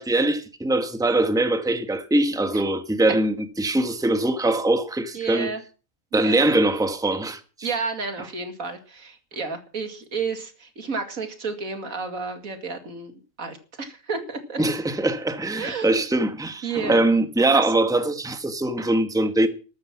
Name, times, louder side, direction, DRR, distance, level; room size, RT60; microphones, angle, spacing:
voice 1, 0.0-5.5 6.1-7.7 14.6-19.5, right 2 dB, 5° right, 1.3 m, -22 dB
voice 2, 5.1-5.6 6.1-6.5 7.6-14.6 15.6-16.1 16.6-17.0 17.5-17.6, right 4 dB, 85° right, 2.7 m, -31 dB
13.5 x 12.5 x 6.0 m
omnidirectional pair, 1.4 m